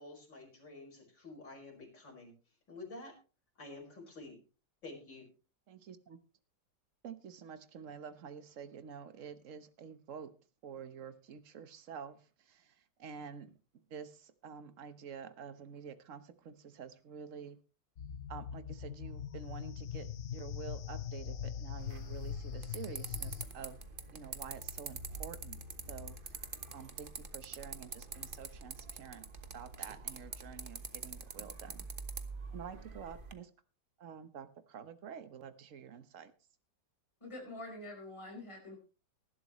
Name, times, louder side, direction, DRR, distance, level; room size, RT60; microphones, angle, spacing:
voice 1, 0.0-2.3 2.7-3.1 3.6-4.4 4.8-5.3, left 2 dB, 85° left, 0 dB, 6.1 m, -49 dB
voice 2, 5.7-6.2 7.0-10.3 10.6-13.6 13.9-17.6 18.3-23.8 24.1-25.6 25.9-26.4 26.7-29.3 29.5-31.9 32.5-33.5 34.0-36.3, right 7 dB, 50° right, 11 dB, 1.3 m, -48 dB
sound 1, 18.0-23.4, left 9 dB, 50° left, 1.1 m, -42 dB
sound 2, 21.8-33.3, right 4 dB, 35° right, 1.2 m, -45 dB
voice 3, 37.2-38.8, left 1 dB, 15° left, 0 dB, 4.7 m, -46 dB
19.5 x 11.5 x 3.1 m, 0.33 s
omnidirectional pair, 1.9 m